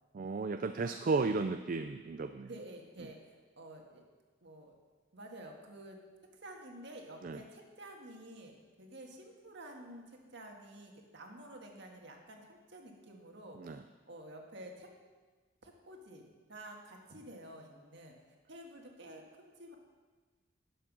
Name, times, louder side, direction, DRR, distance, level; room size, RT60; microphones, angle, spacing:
voice 1, 0.1-2.5 7.2-7.4 13.6-13.8, right 4 dB, 45° right, 8 dB, 0.4 m, -34 dB
voice 2, 2.4-3.2 3.6-4.0 4.4-4.7 5.1-6.0 6.4-13.8 14.1-14.9 15.6-18.2 18.5-19.7, right 1 dB, 60° right, 1 dB, 1.7 m, -50 dB
11.5 x 7.4 x 6.1 m, 1.4 s
head